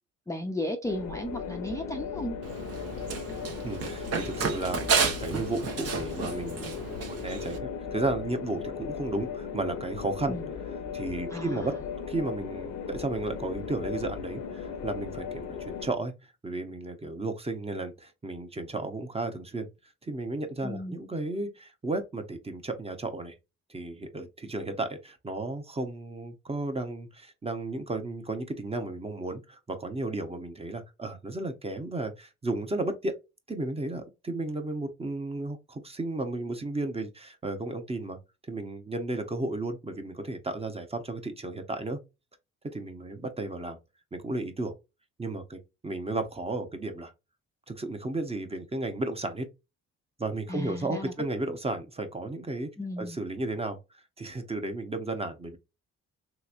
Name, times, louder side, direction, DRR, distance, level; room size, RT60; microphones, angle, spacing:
voice 1, 0.3-2.4 10.3-10.5 11.3-11.8 20.6-21.0 50.5-51.1 52.8-53.2, left 1 dB, 10° left, 0.5 m, -35 dB
sound 1, 0.8-15.9, left 6 dB, 75° left, 0.8 m, -37 dB
Run, 2.4-7.6, right 5 dB, 55° right, 1.0 m, -32 dB
voice 2, 3.6-4.8 5.2-6.8 7.1-10.3 10.9-11.7 12.1-16.1 16.4-19.7 20.0-23.3 23.7-33.2 33.5-38.2 38.5-42.0 42.6-43.8 44.1-44.7 45.2-47.1 47.7-49.5 50.2-52.7 53.0-53.8 54.2-55.6, right 2 dB, 20° right, 0.8 m, -33 dB
3.4 x 3.0 x 2.5 m
cardioid pair, 90°, 30 cm